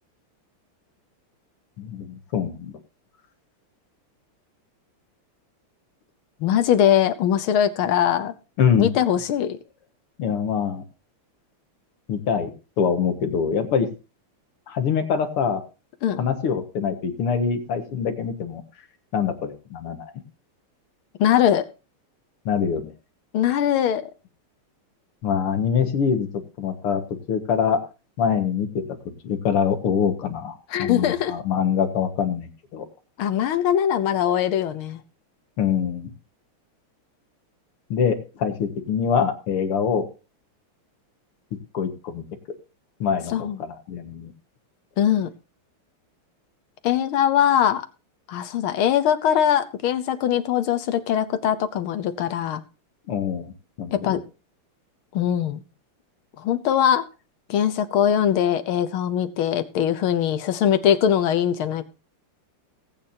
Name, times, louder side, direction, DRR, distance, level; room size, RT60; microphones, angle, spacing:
voice 1, 1.8-2.7 8.6-9.0 10.2-10.8 12.1-12.5 12.8-13.9 14.7-15.6 16.2-18.6 19.1-20.1 22.5-22.9 25.2-26.3 26.6-27.0 27.3-27.8 28.2-29.0 29.2-32.8 35.6-36.1 37.9-40.0 41.7-42.2 43.0-44.3 53.1-53.5 53.8-54.2, left 7 dB, 90° left, 7 dB, 2.4 m, -24 dB
voice 2, 6.4-8.3 8.8-9.6 16.0-16.2 21.2-21.7 23.3-24.0 30.7-31.3 33.2-35.0 43.3-43.6 45.0-45.3 46.8-47.8 48.3-52.6 53.9-54.2 55.1-55.6 56.4-57.0 57.5-61.8, left 9 dB, 75° left, 10 dB, 1.7 m, -21 dB
19.0 x 8.8 x 2.8 m, 0.31 s
omnidirectional pair, 2.4 m